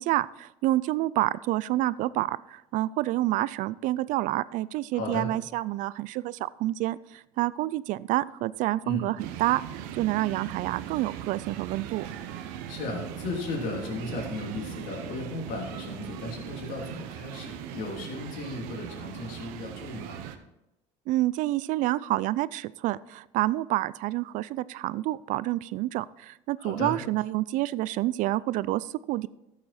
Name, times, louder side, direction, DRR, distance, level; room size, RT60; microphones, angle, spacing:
voice 1, 0.0-12.1 21.1-29.3, right 16 dB, 65° right, 19 dB, 0.4 m, -28 dB
voice 2, 4.9-5.3 8.8-9.1 12.7-20.2 26.6-27.0, left 2 dB, 75° left, -1 dB, 3.0 m, -35 dB
sound 1, 9.2-20.4, right 10 dB, 80° right, 1.0 m, -39 dB
14.0 x 7.6 x 4.3 m, 0.91 s
supercardioid pair, 100°, 14 cm